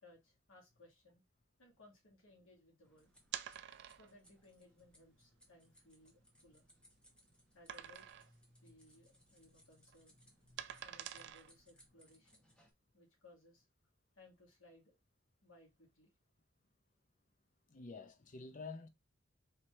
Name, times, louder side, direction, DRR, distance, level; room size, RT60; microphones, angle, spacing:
voice 1, 0.0-1.2 1.6-3.1 3.9-6.7 7.5-8.1 8.6-10.2 10.8-12.4 12.9-13.7 14.1-15.0 15.4-16.1, left 2 dB, 90° left, 1.9 m, -64 dB
sound 1, 2.8-12.7, equal, 5° left, 0.9 m, -68 dB
sound 2, 3.2-4.3 4.9-5.0 5.5-5.6 6.1-7.0 7.7-8.4 8.7-9.0 9.3-11.8, right 10 dB, 55° right, 0.4 m, -48 dB
voice 2, 17.7-18.9, left 4 dB, 40° left, 0.6 m, -48 dB
4.4 x 3.0 x 3.2 m
head